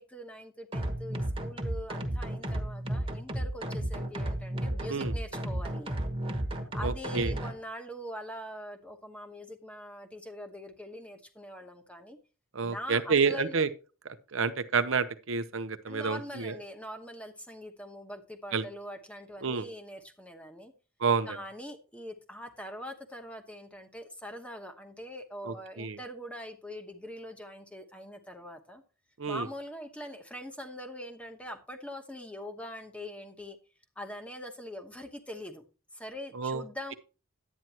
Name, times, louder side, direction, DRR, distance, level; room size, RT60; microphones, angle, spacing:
voice 1, 0.0-6.1 6.7-12.2 12.6-13.6 15.9-20.7 21.3-28.8 29.3-33.6 34.0-35.6 35.9-36.9, equal, 5° left, 1.0 m, -43 dB
sound 1, 0.7-7.5, right 1 dB, 25° right, 1.3 m, -33 dB
voice 2, 6.8-7.4 12.5-13.7 14.0-16.6 18.5-18.6 19.4-19.7 21.0-21.3 25.5-26.0 29.2-29.5 36.3-36.6, right 5 dB, 70° right, 0.8 m, -29 dB
11.0 x 9.2 x 3.0 m
head